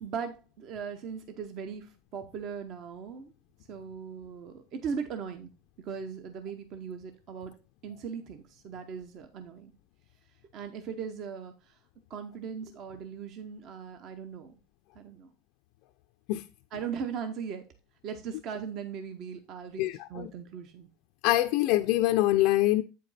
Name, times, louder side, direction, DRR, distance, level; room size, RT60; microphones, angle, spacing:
voice 1, 0.0-3.3 3.7-5.5 5.9-7.5 7.8-9.7 10.5-11.5 12.1-14.5 15.0-15.3 16.7-17.6 18.0-19.8 20.1-20.9, right 6 dB, 40° right, 0.8 m, -38 dB
voice 2, 19.8-20.3 21.2-22.8, left 16 dB, 55° left, 0.4 m, -24 dB
8.1 x 5.1 x 4.1 m
supercardioid pair, 150°, 0 cm